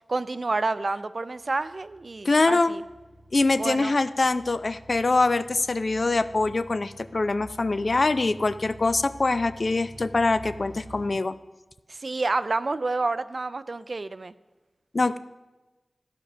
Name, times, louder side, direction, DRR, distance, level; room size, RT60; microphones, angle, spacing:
voice 1, 0.1-2.8 3.6-3.9 11.9-14.3, right 3 dB, 55° right, 14 dB, 0.4 m, -29 dB
sound 1, 1.4-11.1, equal, 35° right, 3.1 m, -47 dB
voice 2, 2.2-2.7 3.3-11.3 14.9-15.2, left 3 dB, 50° left, 13 dB, 0.4 m, -24 dB
13.5 x 5.4 x 6.0 m, 1.1 s
wide cardioid pair, 75°, 0 cm